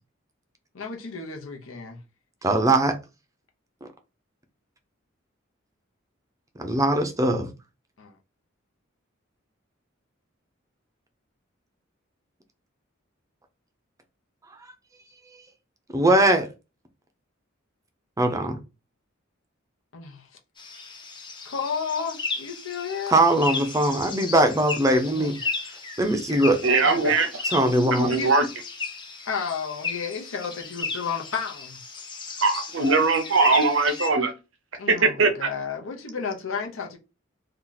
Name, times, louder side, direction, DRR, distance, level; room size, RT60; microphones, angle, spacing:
voice 1, 0.7-2.0 8.0-8.1 19.9-20.3 21.4-23.1 25.2-25.4 26.8-27.2 28.1-28.3 29.3-31.8 34.8-37.0, left 6 dB, 85° left, 0.8 m, -32 dB
voice 2, 2.4-3.0 3.8-3.9 6.6-7.5 15.9-16.5 18.2-18.6 23.1-25.3 26.0-26.6 27.4-28.1, right 1 dB, 15° right, 0.5 m, -21 dB
sound 1, 20.6-34.1, left 4 dB, 25° left, 0.6 m, -35 dB
voice 3, 26.6-27.3 28.0-28.4 32.4-34.3 34.9-35.5, right 3 dB, 70° right, 0.7 m, -21 dB
2.8 x 2.3 x 3.9 m
head